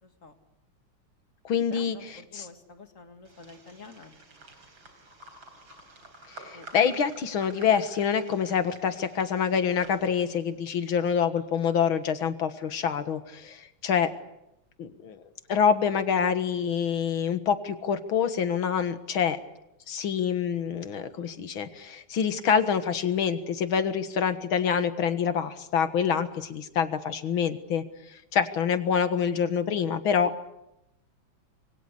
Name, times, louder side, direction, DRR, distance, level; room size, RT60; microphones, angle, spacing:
voice 1, 0.0-0.4 1.7-4.3 6.5-6.7, left 3 dB, 40° left, 6 dB, 2.4 m, -48 dB
voice 2, 1.4-2.0 2.3-2.5 6.3-14.1 14.8-15.2 15.5-19.4 19.9-27.8 28.1-30.3, left 7 dB, 85° left, 10 dB, 2.4 m, -26 dB
sound 1, 3.2-10.5, right 2 dB, 80° right, 4.7 m, -51 dB
26.5 x 23.0 x 8.2 m, 0.86 s
omnidirectional pair, 2.2 m